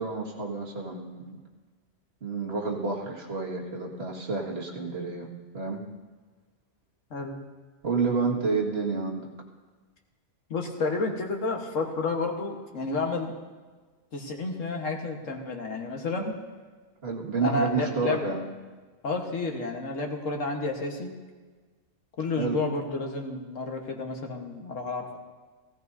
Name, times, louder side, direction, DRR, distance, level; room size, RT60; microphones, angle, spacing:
voice 1, 0.0-1.4 2.2-5.3 5.5-5.8 7.8-9.3 17.0-18.5 22.4-22.6, right 4 dB, 55° right, -3 dB, 2.1 m, -29 dB
voice 2, 7.1-7.4 10.5-13.3 14.1-16.4 17.4-18.2 19.0-21.2 22.2-25.2, left 3 dB, 85° left, 2 dB, 1.7 m, -30 dB
17.0 x 16.5 x 2.7 m, 1.4 s
omnidirectional pair, 1.3 m